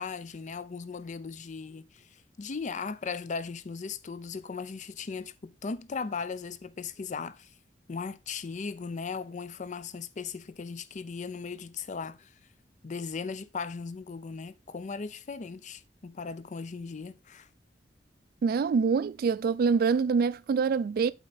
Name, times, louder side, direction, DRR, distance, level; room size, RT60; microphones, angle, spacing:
voice 1, 0.0-7.5 7.9-12.3 12.8-17.5, left 5 dB, 45° left, 0.5 m, -37 dB
voice 2, 18.4-21.1, right 5 dB, 55° right, 0.3 m, -25 dB
8.1 x 4.4 x 4.0 m
head